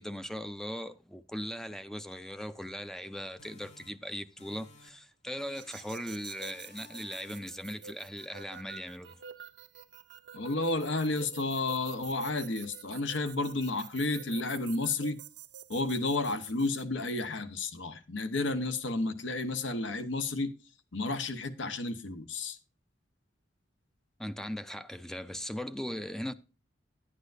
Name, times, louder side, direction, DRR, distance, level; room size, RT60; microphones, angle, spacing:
voice 1, 0.0-9.2 24.2-26.3, equal, 5° left, 0.4 m, -39 dB
sound 1, 3.4-5.1 5.4-6.1 6.4-7.6, left 3 dB, 40° left, 2.0 m, -57 dB
sound 2, 5.5-16.8, right 8 dB, 65° right, 0.6 m, -49 dB
voice 2, 10.3-15.2 15.7-20.5 20.9-22.6, left 2 dB, 80° left, 1.0 m, -32 dB
10.5 x 10.0 x 2.6 m
head